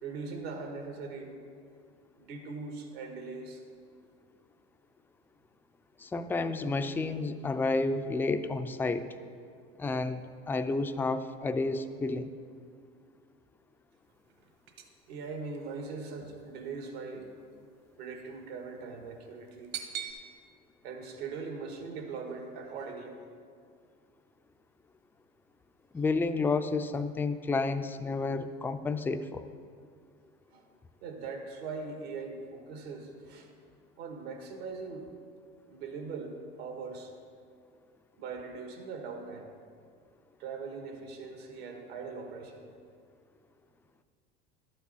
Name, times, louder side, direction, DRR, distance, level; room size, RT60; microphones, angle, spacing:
voice 1, 0.0-1.4 2.2-3.6 15.1-17.3 18.0-19.7 20.8-23.2 30.5-30.7 31.0-33.5 34.0-35.1 35.7-37.1 38.2-39.5 40.4-42.7, right 4 dB, 75° right, 4 dB, 1.7 m, -41 dB
voice 2, 6.0-9.1 9.8-10.2 10.5-12.3 25.9-29.4, left 3 dB, 5° left, 9 dB, 0.3 m, -30 dB
sound 1, 14.0-20.1, right 9 dB, 55° right, 1.4 m, -45 dB
12.0 x 8.7 x 4.1 m, 2.2 s
supercardioid pair, 105°, 31 cm